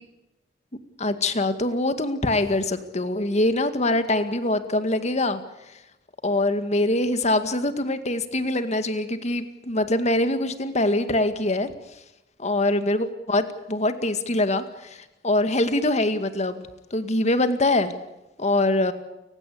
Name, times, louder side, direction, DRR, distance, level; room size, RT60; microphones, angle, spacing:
voice 1, 1.0-5.4 6.2-11.7 12.4-16.6 16.9-17.9 18.4-18.9, left 2 dB, 40° left, 9 dB, 2.1 m, -23 dB
29.5 x 16.5 x 8.6 m, 0.95 s
head